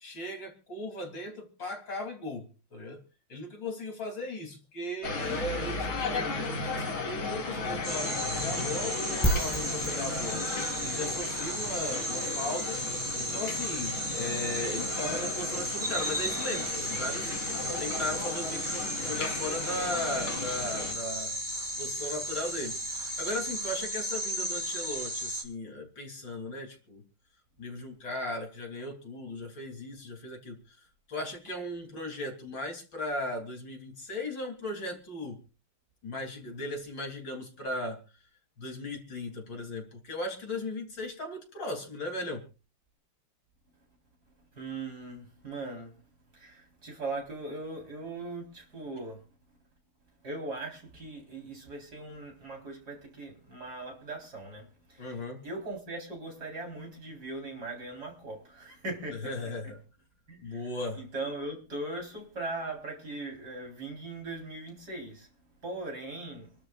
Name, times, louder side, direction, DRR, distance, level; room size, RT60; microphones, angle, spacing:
voice 1, 0.0-3.0 3.3-6.3 6.6-10.5 10.8-12.8 13.2-17.5 17.8-21.4 21.8-27.0 27.6-30.8 31.1-35.4 36.0-38.0 38.6-42.4 55.0-55.4 59.1-59.8 60.4-61.0, left 1 dB, 60° left, 3.9 m, -37 dB
sound 1, 5.0-20.9, left 3 dB, 75° left, 3.1 m, -35 dB
sound 2, 7.8-25.4, equal, 20° right, 4.0 m, -34 dB
sound 3, 9.2-24.0, right 1 dB, 10° left, 1.5 m, -40 dB
voice 2, 44.6-45.9 46.3-49.2 50.2-55.2 55.4-59.3 60.3-65.3 65.6-66.5, right 2 dB, 45° right, 4.7 m, -39 dB
28.0 x 12.5 x 2.5 m
omnidirectional pair, 2.3 m